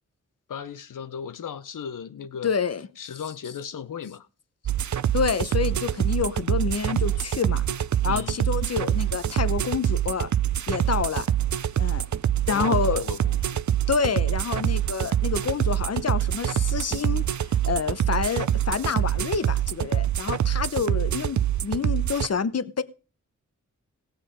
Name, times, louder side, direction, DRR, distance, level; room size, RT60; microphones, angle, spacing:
voice 1, 0.5-2.5 3.0-4.3 8.0-8.4 12.4-13.6, left 7 dB, 90° left, 0.6 m, -36 dB
voice 2, 2.4-2.9 5.1-7.6 8.0-10.3 10.7-11.3 11.8-12.1 12.5-13.0 13.9-22.8, left 6 dB, 55° left, 0.8 m, -28 dB
sound 1, 4.7-22.3, right 11 dB, 70° right, 0.5 m, -25 dB
17.5 x 7.3 x 5.0 m
wide cardioid pair, 70°, 31 cm